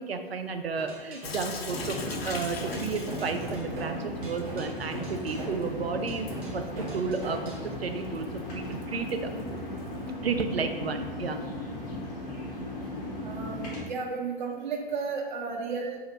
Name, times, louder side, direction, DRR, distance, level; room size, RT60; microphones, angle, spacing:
voice 1, 0.0-6.3 6.5-9.3 10.2-11.4, right 5 dB, 85° right, 7 dB, 0.4 m, -32 dB
sound 1, 0.8-7.7, right 1 dB, 15° right, 0.3 m, -40 dB
Sink (filling or washing) / Drip, 1.2-10.1, left 4 dB, 85° left, 0.5 m, -43 dB
sound 2, 1.7-13.8, left 1 dB, 45° left, 1.2 m, -37 dB
voice 2, 13.2-16.0, right 4 dB, 50° right, 1 dB, 0.7 m, -33 dB
2.8 x 2.6 x 4.1 m, 1.4 s
figure-of-eight pair, 125°, 30 cm